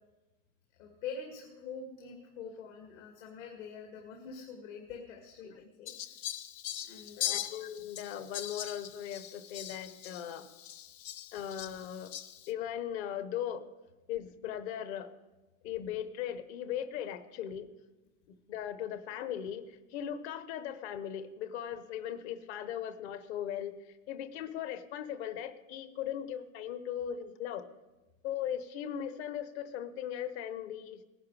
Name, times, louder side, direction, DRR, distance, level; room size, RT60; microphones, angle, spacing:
voice 1, 0.8-5.9 6.8-7.4, left 5 dB, 70° left, 1 dB, 2.2 m, -45 dB
Fowl, 5.9-12.5, left 12 dB, 35° left, 0.8 m, -41 dB
voice 2, 7.2-10.5 11.3-12.1 12.5-13.6 14.1-15.1 15.6-17.7 18.3-27.7 28.2-31.0, left 10 dB, 55° left, 11 dB, 1.1 m, -38 dB
18.5 x 10.5 x 4.9 m, 1.1 s
supercardioid pair, 150°, 40 cm